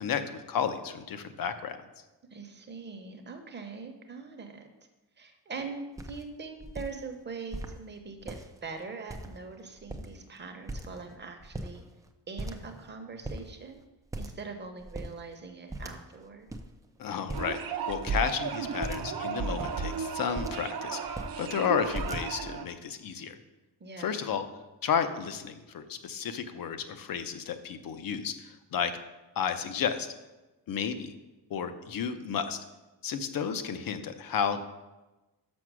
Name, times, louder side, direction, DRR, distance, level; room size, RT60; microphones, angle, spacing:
voice 1, 0.0-1.8 17.0-17.6 17.9-21.1 21.4-23.4 24.0-24.4 24.8-28.9 29.4-30.1 30.7-31.1 31.5-32.6 33.0-34.6, left 7 dB, 60° left, 9 dB, 0.7 m, -32 dB
voice 2, 2.3-4.7 5.2-11.8 12.3-13.8 14.2-16.5 23.8-24.2, right 4 dB, 25° right, 5 dB, 0.8 m, -42 dB
sound 1, 5.6-5.7 6.0-6.2 6.6-6.9 7.5-7.8 8.2-8.7 9.1-9.5 9.8-10.3 10.7-11.1 11.4-12.1 12.4-12.9 13.2-13.4 14.1-14.5 14.8-15.1 15.7-16.2 16.5-16.6 17.3-17.6 18.1-18.3 18.8-19.1 19.5-20.7 21.0-21.4 21.9-22.6, right 1 dB, 10° right, 0.3 m, -39 dB
sound 2, 17.3-22.7, right 6 dB, 60° right, 0.8 m, -34 dB
6.2 x 5.9 x 6.1 m, 1.1 s
wide cardioid pair, 165°, 40 cm